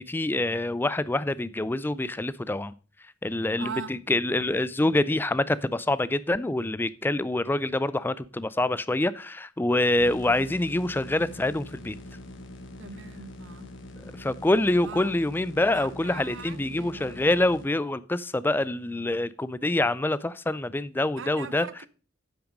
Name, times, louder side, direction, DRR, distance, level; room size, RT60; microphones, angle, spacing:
voice 1, 0.0-2.7 3.2-12.0 14.2-21.7, left 2 dB, 10° left, 0.3 m, -26 dB
voice 2, 3.6-4.0 12.8-13.7 14.8-15.1 15.7-17.3 21.2-21.9, right 5 dB, 65° right, 0.7 m, -41 dB
sound 1, 10.0-17.7, left 1 dB, 70° left, 1.3 m, -43 dB
8.9 x 5.9 x 5.2 m
head